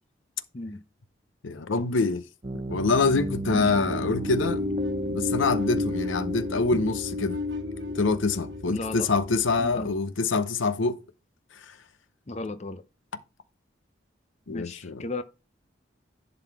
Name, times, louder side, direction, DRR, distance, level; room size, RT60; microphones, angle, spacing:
voice 1, 1.4-2.2 2.5-4.6 5.1-7.4 7.9-11.0 11.5-11.8 14.5-15.0, left 3 dB, 85° left, 0.7 m, -25 dB
Piano, 2.4-9.9, right 1 dB, 30° right, 0.8 m, -35 dB
voice 2, 3.5-3.8 8.7-9.1 9.6-9.9 12.3-12.8 14.5-15.2, left 2 dB, 35° left, 0.6 m, -35 dB
sound 1, 4.2-9.9, left 3 dB, 65° right, 1.1 m, -33 dB
11.0 x 4.0 x 4.7 m
head